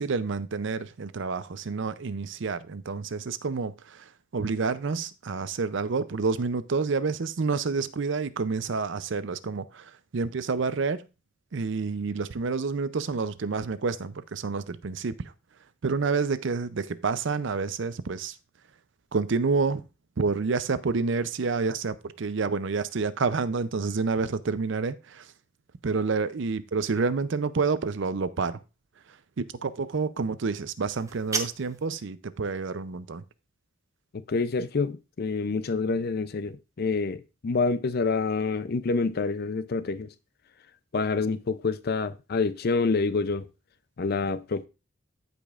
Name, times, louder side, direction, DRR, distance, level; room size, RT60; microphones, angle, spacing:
voice 1, 0.0-11.0 11.5-15.3 15.8-18.4 19.1-19.8 20.2-25.3 25.8-28.6 29.4-33.2, right 4 dB, 60° right, 0.5 m, -29 dB
sound 1, 30.9-31.9, right 4 dB, 15° right, 0.7 m, -33 dB
voice 2, 34.1-40.1 40.9-43.5 44.0-44.7, left 4 dB, 50° left, 0.5 m, -27 dB
15.0 x 5.2 x 2.4 m
head